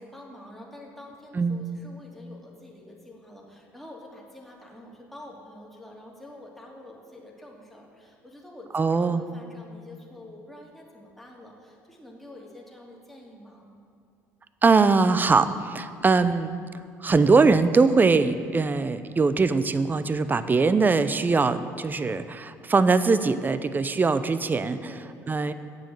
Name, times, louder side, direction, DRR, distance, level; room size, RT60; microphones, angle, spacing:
voice 1, 0.0-13.6 24.8-25.2, left 1 dB, ahead, -3 dB, 2.7 m, -47 dB
voice 2, 8.7-9.2 14.6-16.5 17.0-24.9 25.3-25.5, right 4 dB, 25° right, 12 dB, 0.6 m, -21 dB
8.9 x 7.3 x 7.4 m, 2.4 s
hypercardioid pair, 70°, 7 cm